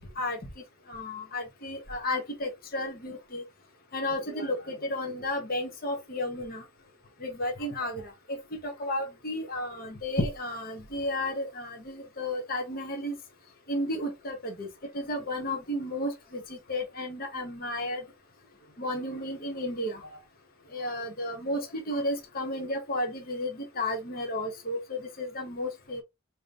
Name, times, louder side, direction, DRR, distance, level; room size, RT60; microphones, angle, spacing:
voice 1, 0.9-3.4 3.9-6.6 7.2-8.0 8.3-8.4 8.6-13.1 13.7-14.7 14.9-16.4 16.7-18.0 18.8-20.2 20.7-26.0, left 1 dB, 45° left, 1.0 m, -33 dB
5.0 x 2.9 x 2.5 m
head